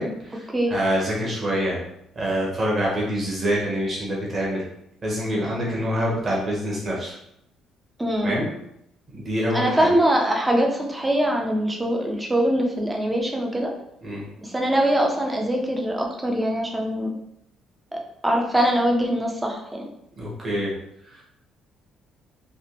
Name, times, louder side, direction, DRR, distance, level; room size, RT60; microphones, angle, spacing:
voice 1, 0.0-1.8 2.1-4.6 5.0-7.2 8.2-8.5 9.1-9.9 14.0-14.3 20.2-20.7 21.1-21.2, equal, 25° right, -4 dB, 1.0 m, -26 dB
voice 2, 8.0-8.4 9.5-13.7 14.4-17.1 17.9-19.9, right 1 dB, 10° right, 0 dB, 0.5 m, -23 dB
3.3 x 2.9 x 2.9 m, 0.77 s
cardioid pair, 170°, 0 cm